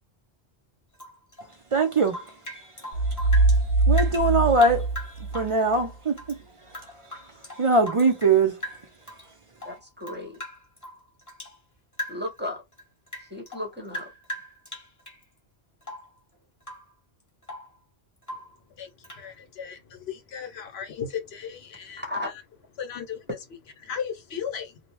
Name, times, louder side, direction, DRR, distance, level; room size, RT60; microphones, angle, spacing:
Rain / Drip, 0.9-3.6 3.9-6.4 6.7-8.4 8.6-9.3 9.6-11.6 11.9-12.4 12.7-15.2 15.8-16.2 16.6-16.9 17.2-17.8 18.2-18.6 19.0-19.3, left 1 dB, 15° left, 1.0 m, -40 dB
voice 1, 1.7-2.3 2.6-2.7 3.9-4.9 5.3-6.1 7.6-8.6, right 3 dB, 55° right, 0.3 m, -21 dB
sound 1, 2.9-5.8, right 3 dB, 75° right, 0.9 m, -22 dB
voice 2, 9.6-10.4 12.1-12.6 13.3-14.1 22.0-22.3, left 1 dB, 10° right, 0.7 m, -34 dB
voice 3, 18.8-22.3 22.8-23.3 23.8-24.8, left 7 dB, 70° left, 0.9 m, -36 dB
2.7 x 2.0 x 3.0 m
omnidirectional pair, 1.1 m